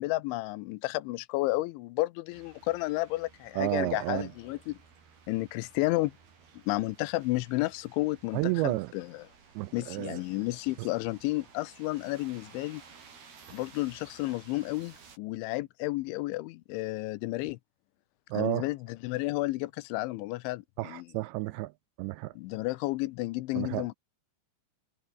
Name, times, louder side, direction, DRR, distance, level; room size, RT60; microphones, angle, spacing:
voice 1, 0.0-4.8 5.3-6.1 6.5-9.2 9.7-12.8 13.5-17.6 18.3-21.0 22.4-23.9, left 20 dB, 85° left, 3.0 m, -32 dB
sound 1, 2.3-15.2, right 6 dB, 55° right, 6.9 m, -56 dB
voice 2, 3.6-4.3 8.3-8.9 9.6-10.2 18.3-18.7 20.8-21.7 22.0-22.3 23.6-23.9, right 19 dB, 85° right, 2.7 m, -31 dB
omnidirectional pair, 5.5 m